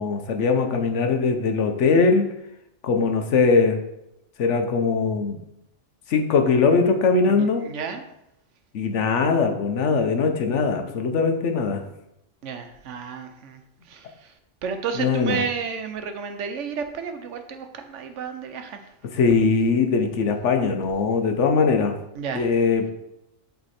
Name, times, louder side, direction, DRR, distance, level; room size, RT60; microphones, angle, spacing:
voice 1, 0.0-2.3 2.8-3.8 4.4-5.4 6.1-7.7 8.7-11.8 14.9-15.4 19.0-21.9 22.3-22.9, left 4 dB, 75° left, 5 dB, 1.1 m, -21 dB
voice 2, 7.3-8.0 12.4-13.6 13.9-14.1 14.6-18.8 22.2-22.5, right 6 dB, 75° right, 7 dB, 1.0 m, -31 dB
7.8 x 3.5 x 4.2 m, 0.85 s
omnidirectional pair, 1.3 m